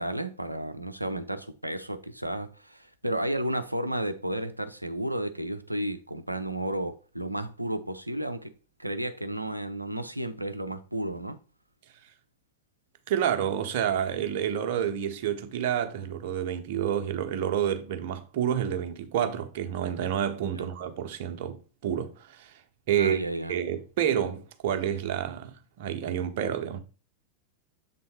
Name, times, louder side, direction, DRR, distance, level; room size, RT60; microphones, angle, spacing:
voice 1, 0.0-8.5 8.8-11.4 20.5-20.6 22.9-23.5, right 1 dB, 90° right, 0.7 m, -32 dB
voice 2, 13.1-22.6 22.9-26.8, right 9 dB, 50° right, 1.0 m, -29 dB
7.6 x 3.7 x 4.4 m
figure-of-eight pair, 90°, 0 cm